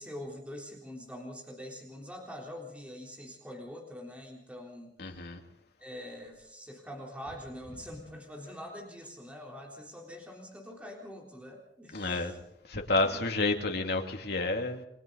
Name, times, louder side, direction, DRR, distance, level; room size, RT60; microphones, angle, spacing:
voice 1, 0.0-5.0 5.8-12.4 12.9-13.3, equal, 10° right, 0 dB, 3.7 m, -44 dB
voice 2, 5.0-5.4 11.9-12.3 12.7-14.8, left 2 dB, 65° left, 3 dB, 2.6 m, -30 dB
29.5 x 22.0 x 4.0 m, 0.73 s
head